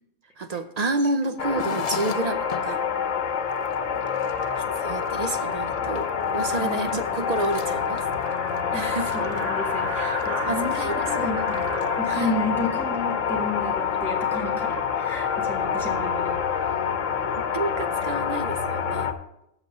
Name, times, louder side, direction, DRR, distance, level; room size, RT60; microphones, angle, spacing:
voice 1, 0.4-2.8 4.6-8.0 8.7-9.1 10.0-10.2 10.5-11.0 11.4-11.5 12.1-12.3 17.5-19.1, right 2 dB, 55° right, 9 dB, 0.4 m, -29 dB
sound 1, 1.4-19.1, left 7 dB, 80° left, 1.1 m, -27 dB
sound 2, 1.4-2.7 3.2-3.3 3.5-3.7 4.0-4.8 5.0-6.1 6.4-9.5 9.8-10.3 10.6-11.2 11.5-11.9, left 6 dB, 45° left, 0.5 m, -40 dB
sound 3, 6.1-6.2 6.4-15.1, right 4 dB, 75° right, 1.4 m, -38 dB
voice 2, 6.5-6.8 8.7-11.6 12.0-16.7, left 1 dB, ahead, -2 dB, 1.4 m, -32 dB
8.1 x 6.7 x 6.5 m, 0.83 s
omnidirectional pair, 1.3 m